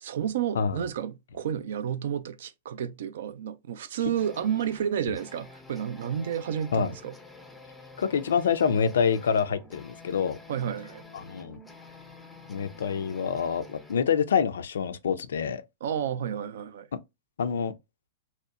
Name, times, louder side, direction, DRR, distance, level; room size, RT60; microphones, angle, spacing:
voice 1, 0.0-7.1 10.5-11.0 15.8-16.9, right 9 dB, 65° right, 0.3 m, -31 dB
sound 1, 4.2-14.2, left 3 dB, 5° left, 0.4 m, -49 dB
voice 2, 8.0-10.4 11.1-11.6 12.5-15.6 17.4-17.7, left 6 dB, 75° left, 0.3 m, -26 dB
2.7 x 2.0 x 2.3 m
hypercardioid pair, 110°, 0 cm